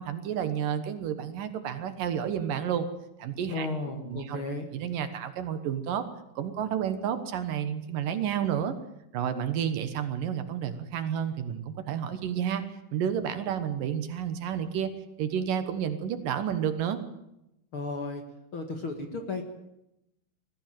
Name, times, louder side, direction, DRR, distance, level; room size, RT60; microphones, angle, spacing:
voice 1, 0.0-2.9 3.2-3.7 4.1-4.4 4.7-6.0 6.4-8.7 9.1-12.6 12.9-14.9 15.2-17.0, right 9 dB, 70° right, 10 dB, 2.8 m, -30 dB
voice 2, 3.5-4.7 17.7-18.2 18.5-19.4, left 3 dB, 45° left, 5 dB, 2.1 m, -34 dB
21.0 x 15.0 x 9.1 m, 0.86 s
omnidirectional pair, 4.3 m